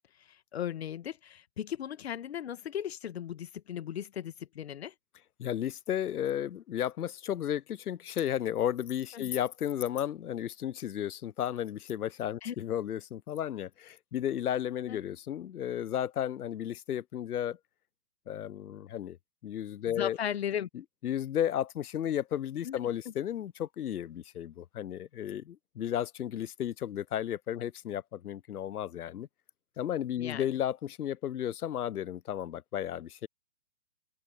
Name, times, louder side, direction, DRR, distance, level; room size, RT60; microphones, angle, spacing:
voice 1, 0.5-4.9 9.1-9.3 12.4-12.5 14.9-15.0 19.9-20.7 22.6-22.8 30.2-30.5, left 10 dB, 40° left, 1.3 m, -36 dB
voice 2, 5.4-17.6 18.3-19.2 19.4-20.2 21.0-29.3 29.8-33.3, left 10 dB, 70° left, 0.5 m, -33 dB
open air
figure-of-eight pair, 130°, 48 cm